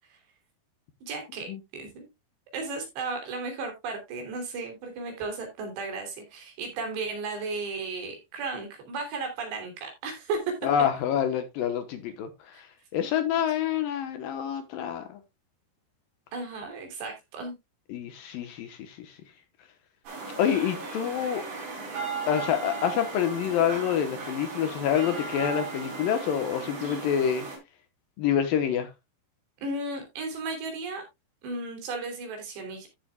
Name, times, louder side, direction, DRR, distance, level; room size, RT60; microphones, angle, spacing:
voice 1, 1.0-2.1 2.5-10.5 12.5-12.6 13.0-13.1 16.3-17.5 29.6-31.0 31.4-32.9, right 3 dB, 85° right, 5.3 m, -34 dB
voice 2, 10.6-15.2 17.9-19.2 20.4-21.5 22.3-27.5 28.2-28.9, left 9 dB, 70° left, 2.4 m, -27 dB
sound 1, 20.1-27.6, right 4 dB, 50° right, 5.7 m, -36 dB
14.0 x 7.6 x 2.3 m
omnidirectional pair, 4.8 m